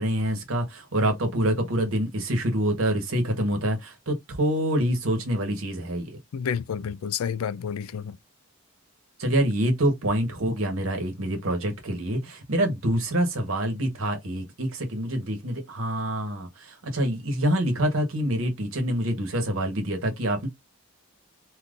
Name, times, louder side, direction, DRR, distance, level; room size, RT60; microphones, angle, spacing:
voice 1, 0.0-6.1 9.2-20.5, right 1 dB, 70° right, 1.1 m, -26 dB
voice 2, 6.3-8.2, left 7 dB, 90° left, 0.4 m, -30 dB
2.9 x 2.5 x 3.6 m
head